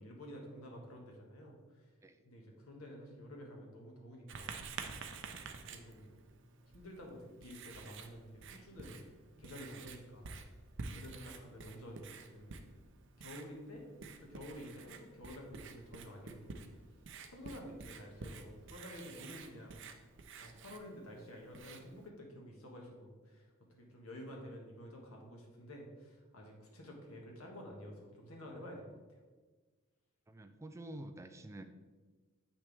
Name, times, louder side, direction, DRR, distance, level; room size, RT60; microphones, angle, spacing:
voice 1, 0.0-1.9 2.2-4.6 5.6-6.1 6.6-9.1 9.4-10.3 10.9-12.6 13.2-13.9 14.2-16.6 17.3-19.9 20.4-29.2, equal, 90° left, 0 dB, 1.7 m, -50 dB
Writing, 4.3-22.1, right 4 dB, 60° right, 0.6 m, -50 dB
voice 2, 30.3-31.6, right 1 dB, 15° right, 8 dB, 0.4 m, -49 dB
7.9 x 5.9 x 3.5 m, 1.4 s
head